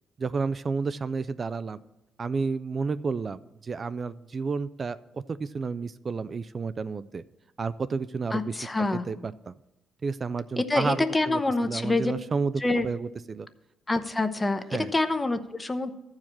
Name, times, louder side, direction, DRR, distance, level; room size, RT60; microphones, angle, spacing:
voice 1, 0.2-1.8 2.2-7.2 7.6-9.5 10.0-12.5 12.8-13.5 14.7-14.9, right 4 dB, 40° right, 14 dB, 0.4 m, -31 dB
voice 2, 8.3-9.0 10.6-12.1 12.6-12.9 13.9-15.9, left 2 dB, 20° left, 10 dB, 0.8 m, -26 dB
13.5 x 4.8 x 7.4 m, 0.92 s
cardioid pair, 90°, 0 cm